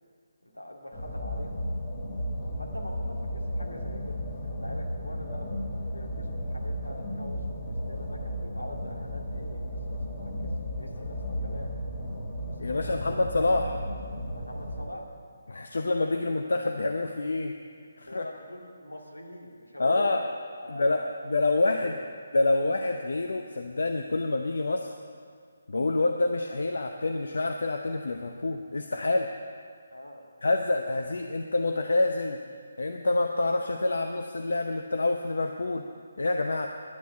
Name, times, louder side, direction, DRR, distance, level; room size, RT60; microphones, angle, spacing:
voice 1, 0.4-1.6 2.6-9.6 9.9-11.7 12.6-13.3 14.3-15.2 18.0-20.2 20.6-21.1 21.6-22.0 29.9-30.2, left 1 dB, 85° left, 0 dB, 2.2 m, -44 dB
sound 1, 0.9-14.8, equal, 35° left, 2.3 m, -34 dB
voice 2, 12.6-13.8 15.5-17.5 18.0-18.2 19.8-20.2 20.7-21.9 22.3-24.9 25.7-29.3 30.4-32.4 32.8-35.8 36.2-36.7, left 2 dB, 65° left, 4 dB, 0.7 m, -27 dB
10.5 x 9.3 x 8.3 m, 2.1 s
figure-of-eight pair, 145°, 0 cm